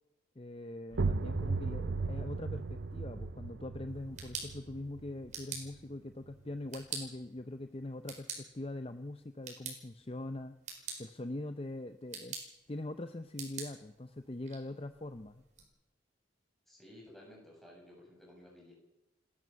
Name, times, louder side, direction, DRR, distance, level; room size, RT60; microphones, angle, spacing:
voice 1, 0.4-10.6 11.0-12.4 12.7-15.5, left 1 dB, 30° left, 9 dB, 0.7 m, -42 dB
sound 1, 0.9-6.5, right 3 dB, 70° right, 0.7 m, -37 dB
sound 2, 3.9-15.6, right 5 dB, 40° right, 4.8 m, -48 dB
voice 2, 16.7-18.7, left 1 dB, ahead, -2 dB, 7.5 m, -55 dB
29.5 x 12.5 x 7.1 m, 0.91 s
head